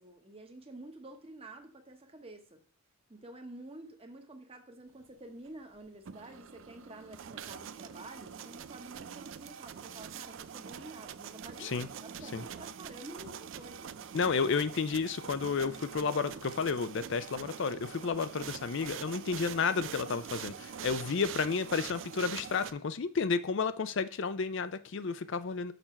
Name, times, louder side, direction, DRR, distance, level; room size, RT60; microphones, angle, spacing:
voice 1, 0.0-2.6 3.1-13.9, right 1 dB, 25° right, 1.1 m, -49 dB
sound 1, 5.9-22.7, right 8 dB, 60° right, 0.4 m, -44 dB
voice 2, 14.1-25.7, left 5 dB, 60° left, 0.5 m, -32 dB
6.7 x 4.3 x 5.7 m
head